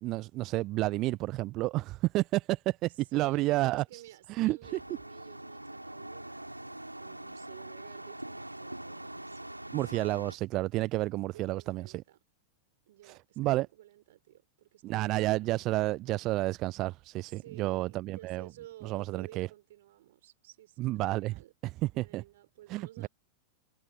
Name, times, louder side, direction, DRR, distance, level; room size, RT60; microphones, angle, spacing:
voice 1, 0.0-4.0 4.3-4.6 9.7-12.0 13.0-13.7 14.8-18.5 18.8-19.5 20.8-21.4 22.0-22.2 22.7-23.1, right 18 dB, 40° right, 0.4 m, -30 dB
voice 2, 2.9-10.0 11.3-12.2 12.9-15.5 17.2-21.5 21.9-23.1, right 14 dB, 55° right, 3.7 m, -53 dB
sound 1, 4.6-10.4, right 1 dB, 85° right, 3.6 m, -43 dB
figure-of-eight pair, 90°, 0 cm